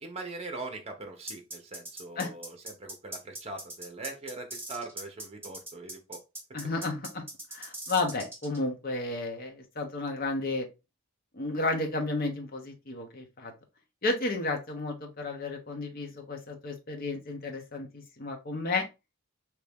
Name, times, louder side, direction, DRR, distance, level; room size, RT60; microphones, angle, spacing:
voice 1, 0.0-6.2, right 3 dB, 30° right, 0.8 m, -41 dB
sound 1, 1.3-8.6, right 1 dB, 10° right, 1.3 m, -41 dB
voice 2, 6.5-7.2 7.5-10.7 11.3-13.5 14.0-18.9, left 2 dB, 45° left, 0.9 m, -32 dB
3.0 x 2.7 x 3.4 m
head